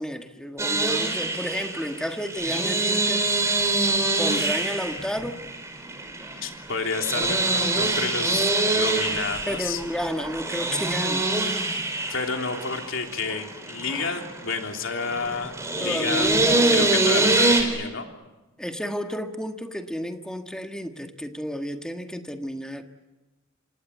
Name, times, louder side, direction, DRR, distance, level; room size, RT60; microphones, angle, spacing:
voice 1, 0.0-3.3 4.2-5.4 9.5-11.3 15.8-17.3 18.6-22.8, equal, 5° left, 5 dB, 1.6 m, -31 dB
sound 1, 0.6-17.6, right 2 dB, 15° right, 4.5 m, -25 dB
voice 2, 6.4-8.5 8.7-9.8 12.1-16.3 16.7-18.1, left 4 dB, 75° left, 3 dB, 3.2 m, -30 dB
26.5 x 26.0 x 8.2 m, 1.1 s
head